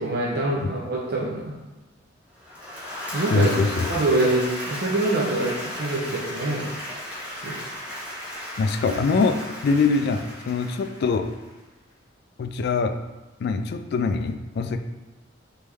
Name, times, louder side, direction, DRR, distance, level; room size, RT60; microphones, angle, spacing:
voice 1, 0.0-1.6 3.1-3.5 3.9-6.7 7.4-7.5, right 2 dB, 55° right, -5 dB, 0.7 m, -25 dB
Applause / Crowd, 2.4-11.5, left 1 dB, 10° right, 1.3 m, -35 dB
voice 2, 3.3-3.9 8.6-11.3 12.4-13.0 13.4-14.8, left 4 dB, 55° left, 8 dB, 0.3 m, -23 dB
4.1 x 3.4 x 3.4 m, 1.1 s
head